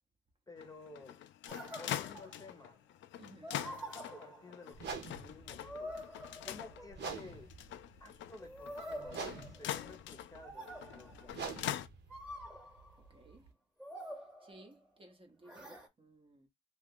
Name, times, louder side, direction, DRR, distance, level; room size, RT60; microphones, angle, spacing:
voice 1, 0.5-1.2 1.7-2.8 3.9-6.0 6.4-7.5 8.0-11.6, left 3 dB, 15° left, 0.8 m, -54 dB
sound 1, 0.6-11.9, left 12 dB, 70° left, 0.4 m, -44 dB
sound 2, 1.5-2.7 3.4-4.8 5.6-7.1 8.4-10.0 10.4-11.4 12.1-13.0 13.8-14.9 15.4-15.9, equal, 5° right, 1.1 m, -47 dB
voice 2, 3.2-3.7 13.0-13.5 14.4-16.5, right 2 dB, 25° right, 0.8 m, -59 dB
sound 3, 4.7-13.5, right 4 dB, 60° right, 1.0 m, -47 dB
2.7 x 2.4 x 3.7 m
cardioid pair, 90°, 20 cm